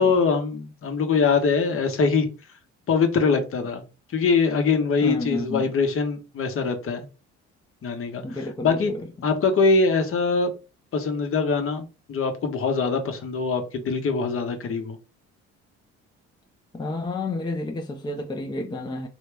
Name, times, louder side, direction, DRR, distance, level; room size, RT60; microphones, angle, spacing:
voice 1, 0.0-2.3 2.9-3.8 4.1-7.1 7.8-8.9 9.2-10.5 10.9-15.0, left 4 dB, 45° left, 0.9 m, -23 dB
voice 2, 5.0-5.7 8.2-9.0 16.7-19.1, left 2 dB, 15° left, 0.6 m, -30 dB
3.2 x 2.8 x 3.3 m
supercardioid pair, 80°, 30 cm